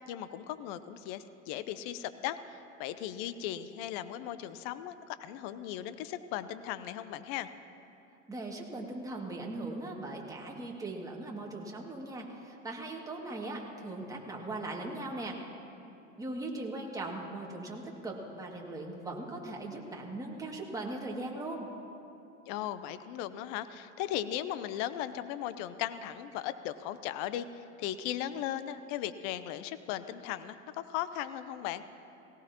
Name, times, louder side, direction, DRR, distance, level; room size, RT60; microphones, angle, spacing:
voice 1, 0.1-7.5 22.5-31.8, left 11 dB, 50° left, 13 dB, 0.7 m, -37 dB
voice 2, 8.3-15.4 16.2-21.7, right 2 dB, 10° right, -2 dB, 2.2 m, -39 dB
18.0 x 17.5 x 3.0 m, 2.9 s
hypercardioid pair, 90°, 39 cm